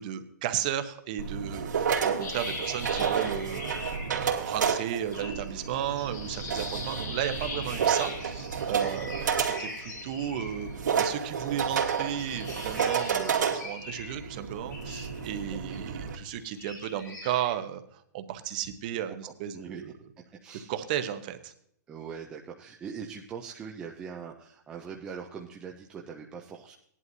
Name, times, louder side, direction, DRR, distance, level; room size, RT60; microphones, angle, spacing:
voice 1, 0.0-3.8 4.1-10.7 11.0-19.9 20.7-21.5, right 10 dB, 30° right, 9 dB, 0.8 m, -34 dB
sound 1, 1.2-16.2, right 7 dB, 85° right, 2.3 m, -31 dB
sound 2, 2.2-4.4 4.7-10.9 11.4-15.8 16.2-17.5, left 3 dB, 90° left, 4.6 m, -42 dB
voice 2, 19.1-20.7 21.9-26.7, right 6 dB, 10° right, 0 dB, 0.4 m, -42 dB
17.0 x 11.0 x 2.7 m, 0.68 s
hypercardioid pair, 175°, 10 cm